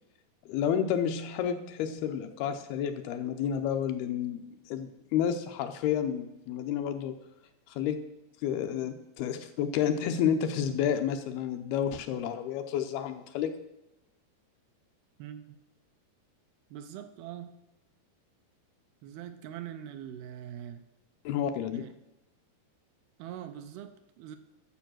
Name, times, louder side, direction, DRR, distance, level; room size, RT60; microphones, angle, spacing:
voice 1, 0.5-4.4 4.7-7.2 7.7-8.0 8.4-13.6 21.3-21.8, left 8 dB, 80° left, 7 dB, 2.4 m, -30 dB
voice 2, 15.2-15.6 16.7-17.6 19.0-20.8 21.7-21.9 23.2-24.4, right 10 dB, 80° right, 8 dB, 2.4 m, -43 dB
11.5 x 7.1 x 6.1 m, 0.94 s
omnidirectional pair, 4.8 m